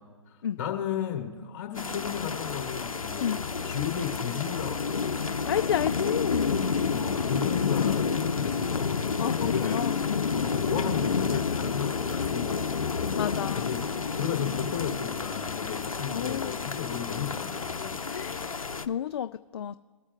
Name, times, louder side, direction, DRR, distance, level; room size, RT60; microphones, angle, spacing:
voice 1, 0.6-5.1 6.9-18.0, left 8 dB, 30° left, 3 dB, 1.8 m, -34 dB
sound 1, 1.8-18.9, left 5 dB, 85° left, 0.7 m, -30 dB
voice 2, 5.3-6.6 9.2-10.3 13.2-13.7 16.1-16.6 18.1-19.8, left 9 dB, 50° left, 10 dB, 0.4 m, -31 dB
21.5 x 8.7 x 2.4 m, 1.4 s
figure-of-eight pair, 140°, 17 cm